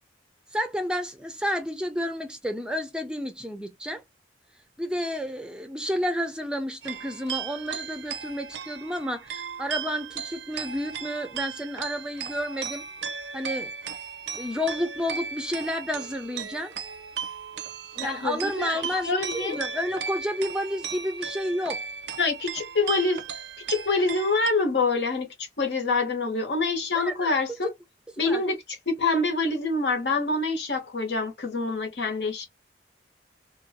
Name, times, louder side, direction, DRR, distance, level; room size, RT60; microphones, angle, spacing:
voice 1, 0.5-4.0 4.8-12.9 13.3-13.7 14.4-16.7 18.0-21.8 26.9-27.3 28.2-28.4, equal, 5° right, 0.4 m, -31 dB
sound 1, 6.8-24.5, right 7 dB, 85° right, 0.5 m, -36 dB
voice 2, 18.0-19.6 22.2-23.2 23.7-27.7 28.2-28.6 28.9-32.5, left 3 dB, 85° left, 1.0 m, -26 dB
2.6 x 2.2 x 2.6 m
head